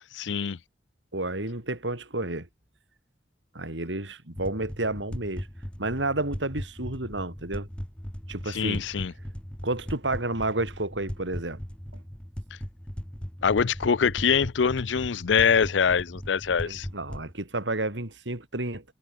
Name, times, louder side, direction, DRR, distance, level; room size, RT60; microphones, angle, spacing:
voice 1, 0.2-0.6 8.5-9.1 13.4-16.9, left 6 dB, 85° left, 0.6 m, -24 dB
voice 2, 1.1-2.5 3.5-5.5 5.8-7.7 8.3-8.8 9.6-11.6 11.9-12.0 16.6-18.8, right 2 dB, 85° right, 4.0 m, -31 dB
sound 1, 4.4-17.3, equal, 5° left, 1.1 m, -38 dB
head